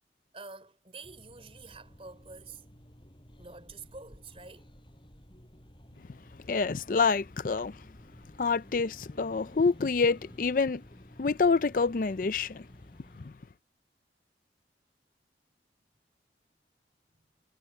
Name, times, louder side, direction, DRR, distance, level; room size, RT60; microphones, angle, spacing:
voice 1, 0.3-2.6 3.4-4.7 17.2-17.3, right 4 dB, 35° right, 3.9 m, -48 dB
sound 1, 1.0-13.3, equal, 30° left, 7.6 m, -54 dB
voice 2, 6.5-7.8 8.4-10.8 11.2-12.7, left 4 dB, 50° left, 0.5 m, -27 dB
head